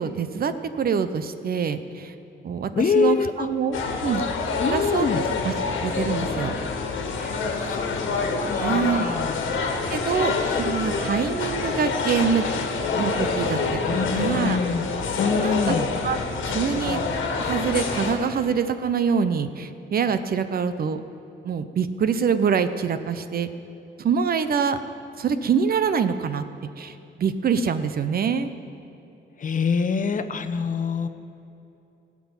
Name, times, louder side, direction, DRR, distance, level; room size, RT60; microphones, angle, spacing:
voice 1, 0.0-2.1 2.4-4.2 4.7-5.1 5.4-5.5 5.8-6.6 7.2-7.3 8.6-9.2 9.9-12.5 13.0-13.8 14.1-14.6 15.4-15.8 16.0-16.2 16.5-17.0 17.4-21.0 21.4-23.5 24.0-24.8 25.2-26.4 26.8-28.6, right 6 dB, 50° right, 11 dB, 0.8 m, -25 dB
voice 2, 2.7-3.5 4.6-5.2 7.6-7.9 8.4-9.4 10.4-10.6 13.8-14.8 15.1-15.9 29.4-31.1, left 5 dB, 40° left, 8 dB, 0.9 m, -25 dB
sound 1, 3.7-18.1, left 4 dB, 80° left, 1.8 m, -27 dB
17.5 x 6.1 x 8.9 m, 2.8 s
cardioid pair, 90°, 20 cm